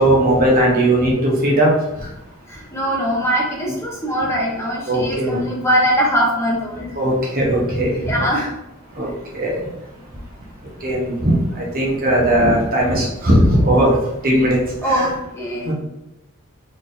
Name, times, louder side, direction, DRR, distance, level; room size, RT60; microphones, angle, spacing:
voice 1, 0.0-1.7 4.9-5.4 7.0-8.5 9.0-9.1 9.3-9.6 10.8-13.9 14.2-14.6 14.8-15.1 15.7-15.8, right 1 dB, 45° right, -3 dB, 1.0 m, -17 dB
voice 2, 2.5-7.0 8.0-8.5 14.8-15.7, equal, 15° left, -4 dB, 0.8 m, -21 dB
4.1 x 3.5 x 2.7 m, 0.90 s
head